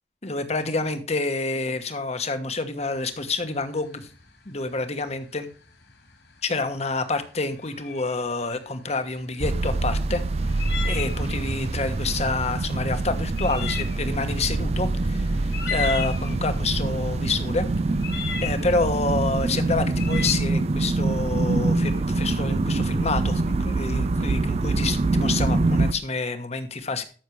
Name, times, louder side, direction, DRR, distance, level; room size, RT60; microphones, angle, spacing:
voice 1, 0.2-4.1 4.4-5.5 6.4-17.7 18.4-27.0, left 3 dB, 40° left, 9 dB, 1.2 m, -28 dB
sound 1, 2.8-20.3, left 6 dB, 70° left, 3.0 m, -37 dB
sound 2, 9.4-25.9, right 2 dB, 35° right, 0.4 m, -25 dB
13.0 x 6.5 x 3.2 m, 0.39 s
head